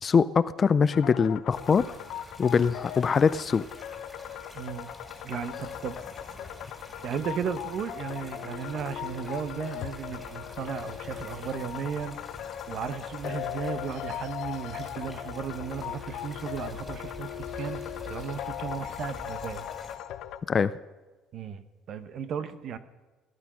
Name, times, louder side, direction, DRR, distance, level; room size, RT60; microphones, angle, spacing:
voice 1, 0.0-1.9 2.4-3.6 20.5-20.7, left 6 dB, 25° left, 14 dB, 0.4 m, -23 dB
sound 1, 0.9-20.4, left 11 dB, 60° left, 0.7 m, -39 dB
sound 2, 1.5-20.0, left 2 dB, 5° left, 2.9 m, -47 dB
voice 2, 4.5-4.9 5.2-6.0 7.0-12.2 12.7-17.3 17.5-19.7 21.3-21.6 21.9-22.8, right 7 dB, 45° right, 11 dB, 1.0 m, -35 dB
18.0 x 11.5 x 6.2 m, 1.2 s
cardioid pair, 160°, 0 cm